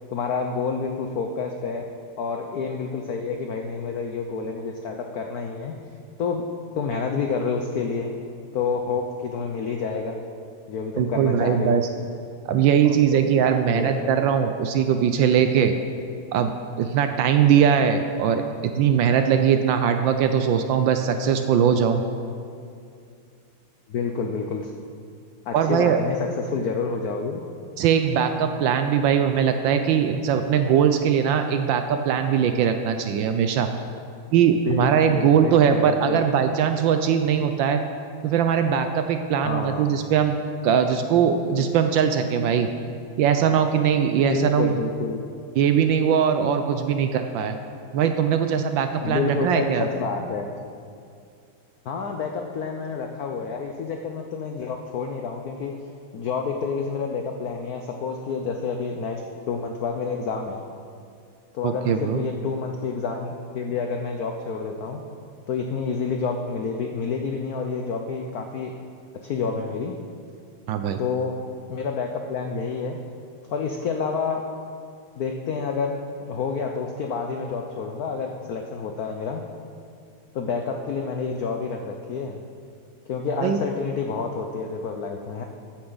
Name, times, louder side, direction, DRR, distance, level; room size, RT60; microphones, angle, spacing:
voice 1, 0.1-1.8 2.2-5.7 6.2-6.4 6.8-8.1 8.5-10.2 10.7-11.8 13.1-13.2 13.7-14.1 23.9-24.7 25.5-27.4 34.7-36.2 39.4-39.9 41.6-41.7 44.3-45.2 49.0-50.6 51.8-55.7 56.1-59.2 59.5-60.7 61.5-65.0 65.5-68.7 69.2-69.9 71.0-71.3 71.7-73.0 73.5-74.4 75.2-75.9 76.2-79.4 80.3-82.4 83.1-85.4, left 5 dB, 75° left, 3 dB, 0.8 m, -28 dB
voice 2, 11.0-11.9 12.5-15.7 16.3-16.5 16.8-22.0 25.5-26.0 27.8-33.7 34.3-37.8 38.2-40.3 40.6-42.7 43.2-44.8 45.6-47.6 47.9-49.9 61.6-62.2 70.7-71.0 83.4-83.6, right 8 dB, 75° right, 7 dB, 1.2 m, -21 dB
14.0 x 8.7 x 3.9 m, 2.4 s
omnidirectional pair, 2.4 m